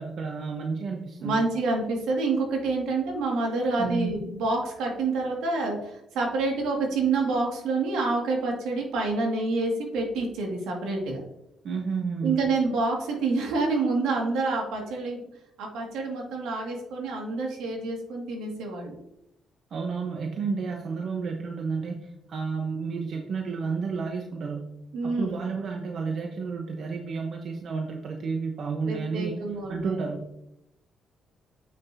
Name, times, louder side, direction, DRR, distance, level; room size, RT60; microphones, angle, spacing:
voice 1, 0.0-1.5 3.8-4.2 11.6-12.4 19.7-24.7 25.0-29.4 29.7-30.3, right 5 dB, 60° right, 1 dB, 1.0 m, -31 dB
voice 2, 1.2-11.2 12.2-15.3 15.6-19.0 24.9-25.3 28.8-29.9, right 3 dB, 90° right, 0 dB, 2.2 m, -27 dB
8.0 x 6.9 x 2.8 m, 0.82 s
cardioid pair, 90°, 0 cm